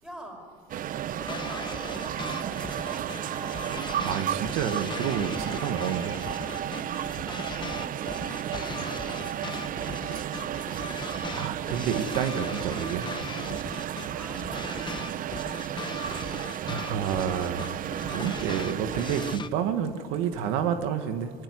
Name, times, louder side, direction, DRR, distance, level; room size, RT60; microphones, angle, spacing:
voice 1, 0.0-3.8 7.2-10.7 14.1-15.6, right 1 dB, 5° right, 2 dB, 5.5 m, -47 dB
sound 1, 0.7-19.4, right 11 dB, 40° right, 0.5 m, -33 dB
sound 2, 1.2-19.5, left 5 dB, 20° left, 0.9 m, -39 dB
voice 2, 4.0-6.1 11.3-13.1 16.2-21.3, right 8 dB, 85° right, 8 dB, 1.6 m, -30 dB
22.5 x 17.5 x 9.8 m, 2.1 s
cardioid pair, 125°, 21 cm